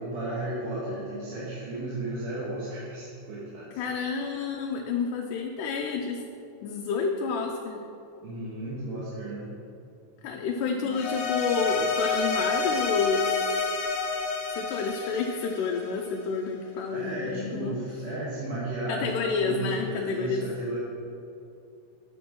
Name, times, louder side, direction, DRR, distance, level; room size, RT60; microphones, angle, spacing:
voice 1, 0.0-3.8 8.2-9.5 10.8-11.0 16.9-20.8, right 2 dB, 80° right, -9 dB, 3.0 m, -34 dB
voice 2, 3.7-6.2 6.6-7.8 10.2-13.7 14.5-17.8 18.9-20.4, left 5 dB, 90° left, 1 dB, 2.2 m, -29 dB
sound 1, 10.9-16.3, left 4 dB, 70° left, 1.6 m, -29 dB
8.6 x 6.0 x 5.3 m, 2.6 s
omnidirectional pair, 3.6 m